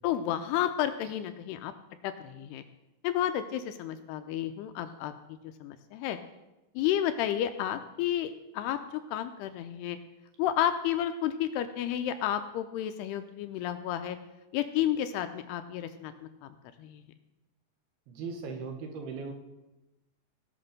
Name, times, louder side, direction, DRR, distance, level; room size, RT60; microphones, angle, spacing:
voice 1, 0.0-1.7 2.0-2.6 3.0-5.1 5.6-6.2 6.8-8.8 9.1-10.0 10.4-14.2 14.5-16.1 16.4-16.5 16.8-17.0, left 11 dB, 85° left, 9 dB, 2.5 m, -31 dB
voice 2, 18.1-19.3, right 4 dB, 70° right, 4 dB, 3.0 m, -38 dB
16.5 x 5.9 x 6.5 m, 0.98 s
omnidirectional pair, 5.0 m